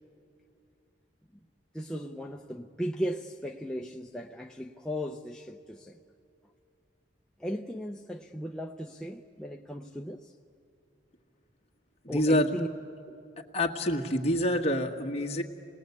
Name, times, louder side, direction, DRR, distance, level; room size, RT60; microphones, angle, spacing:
voice 1, 1.7-6.0 7.4-10.3 12.1-12.7 13.1-13.2, equal, 5° left, 0.6 m, -36 dB
voice 2, 12.0-12.5 13.4-15.4, equal, 35° left, 1.6 m, -27 dB
27.5 x 20.0 x 8.3 m
head